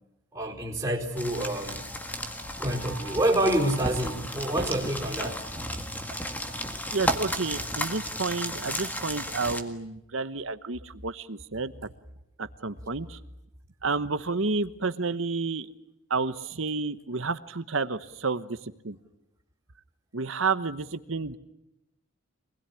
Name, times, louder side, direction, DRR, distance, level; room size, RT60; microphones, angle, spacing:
voice 1, 0.3-1.9 2.6-5.5, right 1 dB, 10° right, -4 dB, 4.4 m, -27 dB
sound 1, 1.2-9.6, equal, 10° left, 1.8 m, -33 dB
voice 2, 6.9-11.9 12.4-13.2 13.8-15.7 16.1-19.0 20.1-21.4, right 4 dB, 70° right, 12 dB, 1.1 m, -30 dB
26.0 x 20.5 x 9.8 m, 0.87 s
head